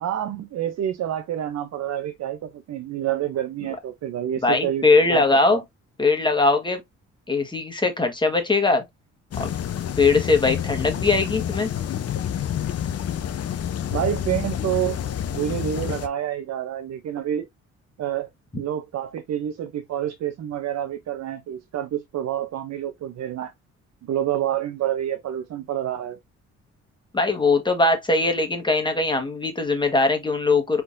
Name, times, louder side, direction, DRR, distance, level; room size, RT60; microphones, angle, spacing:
voice 1, 0.0-4.8 5.1-5.2 5.5-5.6 13.9-17.5 18.0-23.5 24.0-26.2, right 11 dB, 60° right, 0.7 m, -28 dB
voice 2, 4.4-5.6 6.0-6.8 7.3-8.8 9.4-9.5 10.0-11.7 27.1-30.8, left 3 dB, 15° left, 1.4 m, -20 dB
sound 1, 9.3-16.1, left 9 dB, 55° left, 0.7 m, -28 dB
4.4 x 4.0 x 2.6 m
cardioid pair, 90°, 30 cm